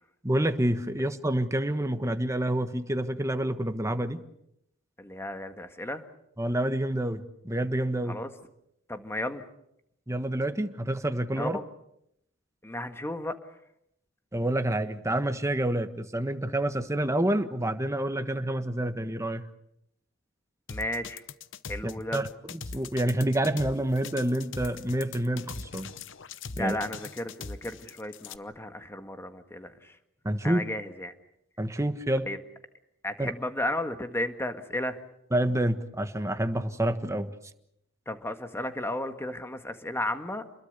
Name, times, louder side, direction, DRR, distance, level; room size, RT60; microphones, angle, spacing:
voice 1, 0.2-4.2 6.4-8.2 10.1-11.6 14.3-19.4 21.8-25.9 26.5-26.8 30.2-30.6 31.6-32.3 33.2-33.3 35.3-37.3, right 1 dB, 15° right, 8 dB, 1.4 m, -28 dB
voice 2, 5.0-6.1 8.1-8.3 8.9-9.4 11.4-11.6 12.6-13.4 20.7-21.2 21.7-22.2 26.6-30.0 30.4-31.1 32.3-32.4 33.0-35.0 38.1-40.4, left 1 dB, 15° left, 7 dB, 1.7 m, -34 dB
sound 1, 20.7-28.4, left 4 dB, 65° left, 0.9 m, -40 dB
28.5 x 22.0 x 6.8 m, 0.79 s
head